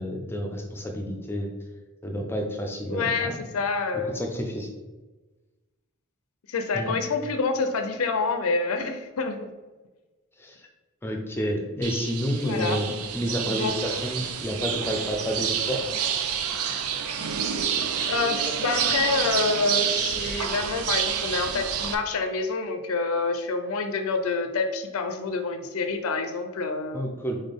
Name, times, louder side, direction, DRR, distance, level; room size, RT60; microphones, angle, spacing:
voice 1, 0.0-1.5 2.0-3.4 4.1-4.7 6.7-6.9 10.4-10.7 11.0-15.8 26.9-27.4, equal, 10° left, 2 dB, 0.5 m, -30 dB
voice 2, 2.9-4.1 6.5-9.5 12.4-12.8 13.4-13.8 18.1-27.0, left 4 dB, 75° left, 7 dB, 0.4 m, -27 dB
sound 1, 11.8-21.9, right 8 dB, 80° right, 0.5 m, -28 dB
4.2 x 3.7 x 3.4 m, 1.2 s
head